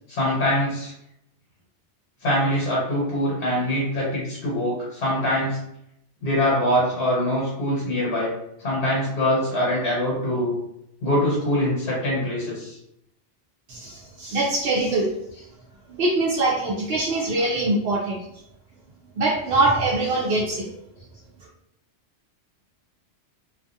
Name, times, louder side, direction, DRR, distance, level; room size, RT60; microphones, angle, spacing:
voice 1, 0.1-0.9 2.2-5.6 6.2-8.3 8.6-10.6 11.0-12.8, left 1 dB, 65° left, -6 dB, 1.2 m, -23 dB
voice 2, 13.7-15.1 15.9-18.2 19.2-20.7, right 2 dB, 65° right, -4 dB, 0.8 m, -23 dB
2.4 x 2.4 x 2.6 m, 0.79 s
omnidirectional pair, 1.2 m